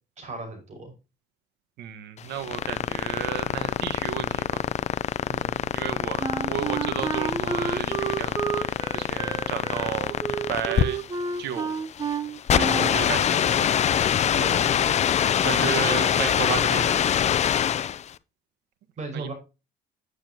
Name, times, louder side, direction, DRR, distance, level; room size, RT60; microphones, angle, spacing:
voice 1, 0.2-0.9 5.3-5.7 12.7-13.1 14.3-14.7 15.4-16.9 19.0-19.3, right 2 dB, 45° right, 3 dB, 5.7 m, -36 dB
voice 2, 1.8-4.7 5.7-11.0 11.4-11.7 12.6-13.8 15.4-17.3 19.1-19.3, right 10 dB, 80° right, 11 dB, 1.5 m, -33 dB
sound 1, 2.2-18.1, left 9 dB, 40° left, 0.6 m, -24 dB
Wind instrument woodwind instrument, 6.2-13.0, right 5 dB, 25° right, 0.8 m, -31 dB
9.9 x 8.7 x 2.9 m, 0.28 s
cardioid pair, 110°, 17 cm